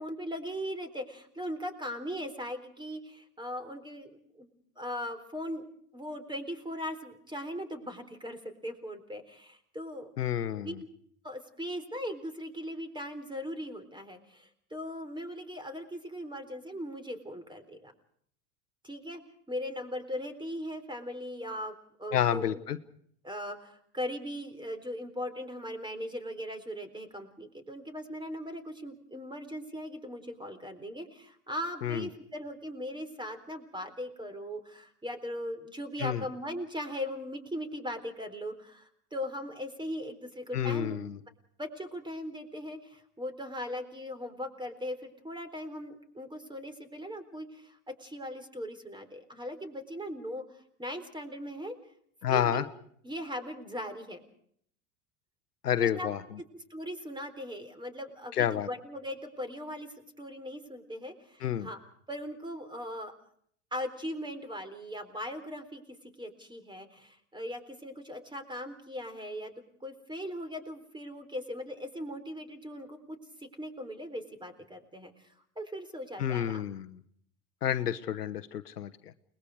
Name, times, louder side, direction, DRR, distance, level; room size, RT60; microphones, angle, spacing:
voice 1, 0.0-4.5 4.8-5.7 5.9-10.1 10.6-10.9 11.2-17.9 18.8-19.2 19.5-21.7 22.0-22.6 23.2-41.0 41.6-51.8 52.3-52.6 53.0-54.2 55.8-56.1 56.5-61.8 62.1-63.1 63.7-65.8 66.2-69.5 69.8-75.3 75.6-76.6, equal, 10° right, 10 dB, 4.0 m, -39 dB
voice 2, 10.2-10.8 22.1-22.8 31.8-32.1 36.0-36.2 40.5-41.1 52.2-52.6 55.6-56.2 58.3-58.7 61.4-61.7 76.2-77.0 77.6-79.1, left 10 dB, 85° left, 13 dB, 1.1 m, -29 dB
29.5 x 20.5 x 4.8 m, 0.64 s
hypercardioid pair, 80°, 46 cm